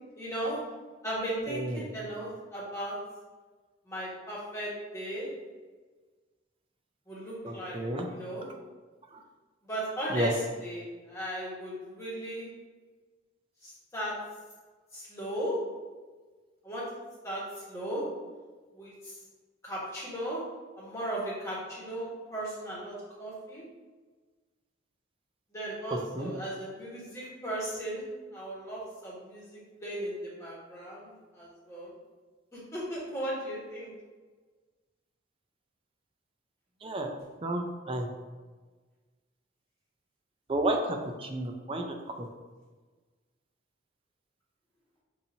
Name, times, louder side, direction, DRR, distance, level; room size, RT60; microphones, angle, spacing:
voice 1, 0.2-0.6 1.0-3.0 3.9-5.3 7.1-7.8 8.1-8.5 9.6-12.5 13.6-14.1 14.9-15.6 16.6-16.8 17.2-18.0 18.7-19.1 19.6-20.4 20.8-23.6 25.5-31.9 32.7-33.9, right 1 dB, 15° left, -7 dB, 1.3 m, -36 dB
voice 2, 1.5-1.9 7.4-8.1 9.1-9.2 10.1-10.3 25.9-26.3 36.8-37.1 37.4-38.1 40.5-41.9, right 1 dB, 30° right, 3 dB, 0.4 m, -31 dB
5.5 x 2.6 x 2.7 m, 1.3 s
head